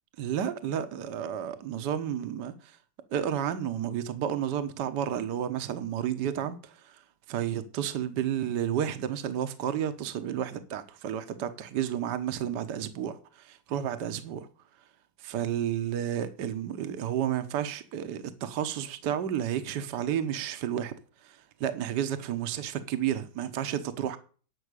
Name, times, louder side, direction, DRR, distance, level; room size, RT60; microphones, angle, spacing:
voice 1, 0.2-2.5 3.1-6.8 7.3-14.5 15.2-20.9 21.2-24.2, right 9 dB, 55° right, 1.5 m, -31 dB
11.0 x 5.8 x 8.2 m
omnidirectional pair, 2.4 m